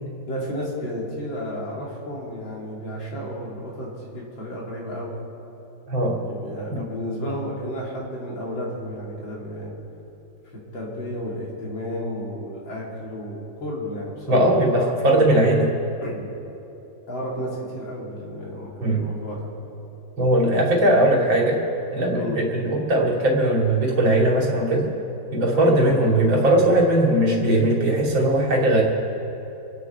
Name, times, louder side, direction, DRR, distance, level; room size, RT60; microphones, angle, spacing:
voice 1, 0.3-5.1 6.2-9.7 10.7-15.2 16.0-16.3 17.1-19.5 22.1-22.4 25.5-26.0, equal, 80° left, -4 dB, 3.8 m, -32 dB
voice 2, 5.9-6.2 6.7-6.8 14.3-15.7 18.8-19.1 20.2-21.6 21.9-24.9 25.3-28.8, right 1 dB, 90° right, -2 dB, 3.3 m, -19 dB
27.5 x 9.7 x 4.6 m, 3.0 s
omnidirectional pair, 2.1 m